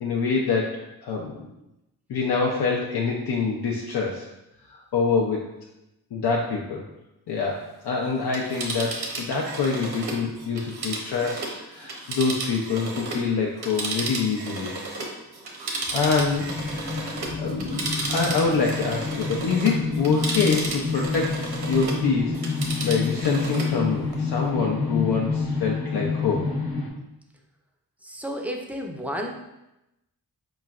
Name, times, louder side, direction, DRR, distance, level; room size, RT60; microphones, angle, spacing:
voice 1, 0.0-1.5 2.1-4.3 4.7-5.4 6.1-6.8 7.3-14.7 15.9-22.4 22.8-26.5, left 5 dB, 85° left, -2 dB, 0.5 m, -26 dB
Telephone, 8.2-13.3 13.6-22.0 22.3-23.8 24.1-24.2, right 2 dB, 80° right, 0.8 m, -33 dB
sound 1, 16.0-26.9, left 4 dB, 70° left, 0.9 m, -28 dB
voice 2, 28.0-29.3, equal, 5° right, 2 dB, 0.4 m, -31 dB
4.7 x 3.1 x 2.3 m, 0.91 s
wide cardioid pair, 95°, 38 cm